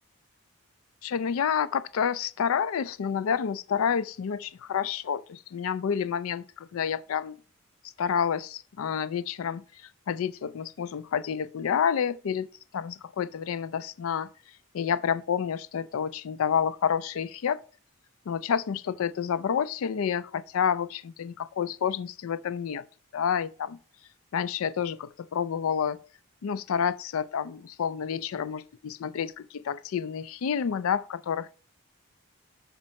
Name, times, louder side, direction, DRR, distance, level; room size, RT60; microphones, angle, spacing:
voice 1, 1.0-7.4 8.0-9.6 10.1-12.5 12.7-14.3 14.7-17.6 18.3-22.9 23.1-23.8 24.3-26.0 26.4-31.5, left 7 dB, 70° left, 0.4 m, -29 dB
7.4 x 5.3 x 4.3 m
head